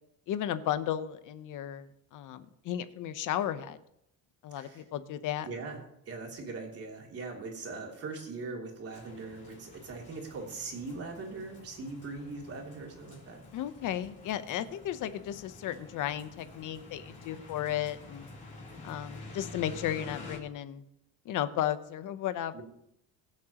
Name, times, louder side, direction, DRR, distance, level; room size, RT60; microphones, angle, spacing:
voice 1, 0.3-1.9 2.1-3.8 4.4-5.5 13.5-18.3 18.8-20.8 21.2-22.6, left 11 dB, 60° left, 12 dB, 1.0 m, -34 dB
voice 2, 5.5-5.8 6.1-13.4 22.5-22.6, right 3 dB, 40° right, 0 dB, 3.1 m, -41 dB
sound 1, 8.9-20.4, left 3 dB, 20° left, 3.7 m, -49 dB
21.0 x 7.6 x 3.0 m, 0.79 s
cardioid pair, 140°, 36 cm